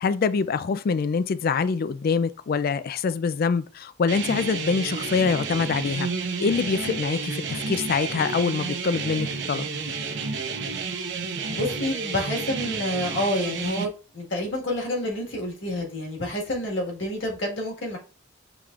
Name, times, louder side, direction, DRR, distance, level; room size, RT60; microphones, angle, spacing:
voice 1, 0.0-6.1 6.4-9.7, left 5 dB, 50° left, 0.3 m, -25 dB
sound 1, 4.1-13.9, right 4 dB, 60° right, 0.8 m, -31 dB
voice 2, 11.5-18.0, left 1 dB, 65° left, 1.6 m, -28 dB
5.9 x 3.4 x 2.4 m
head